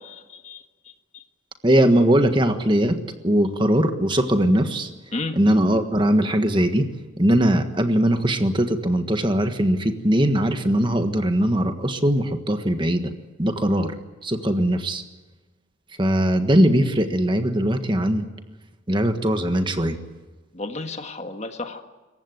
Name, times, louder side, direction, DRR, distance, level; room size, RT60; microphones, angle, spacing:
voice 1, 0.0-0.6 5.1-5.4 20.5-21.8, left 2 dB, 35° left, 6 dB, 1.6 m, -32 dB
voice 2, 1.6-3.0 3.2-4.9 5.3-6.9 7.2-13.1 13.4-13.9 14.2-15.0 16.0-18.2 18.9-20.0, right 1 dB, 25° right, 7 dB, 1.5 m, -20 dB
27.0 x 15.0 x 9.3 m, 1.2 s
head